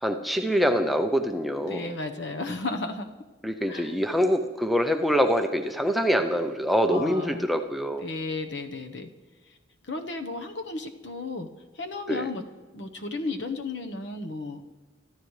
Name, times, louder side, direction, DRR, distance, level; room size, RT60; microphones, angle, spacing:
voice 1, 0.0-1.9 3.4-8.0 12.1-12.3, equal, ahead, 5 dB, 0.5 m, -25 dB
voice 2, 1.6-3.1 3.7-3.9 6.9-7.5 8.0-9.1 9.9-11.5 11.8-12.4 12.7-14.6, left 3 dB, 65° left, 6 dB, 1.0 m, -33 dB
24.5 x 12.5 x 3.2 m, 1.3 s
head